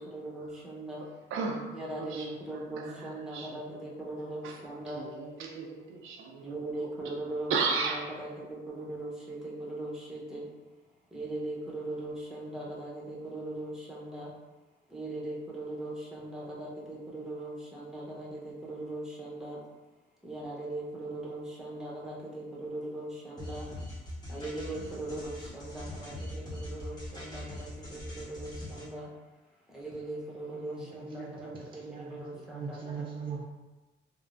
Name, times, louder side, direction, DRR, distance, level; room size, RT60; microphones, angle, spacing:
voice 1, 0.1-1.0 1.7-5.1 6.4-7.5 7.8-8.3 8.7-10.4 11.1-14.3 14.9-18.3 18.6-19.6 20.2-23.7 24.3-29.1 29.7-31.5 32.1-33.0, right 2 dB, 5° right, -4 dB, 0.8 m, -39 dB
voice 2, 1.3-3.8 4.4-4.6 4.9-7.1 7.5-8.1, right 4 dB, 85° right, 1 dB, 0.5 m, -35 dB
sound 1, 23.4-28.9, left 1 dB, 20° left, 1.0 m, -41 dB
voice 3, 30.5-33.4, right 5 dB, 25° right, -4 dB, 0.4 m, -41 dB
3.4 x 2.0 x 2.5 m, 1.2 s
cardioid pair, 90°, 20 cm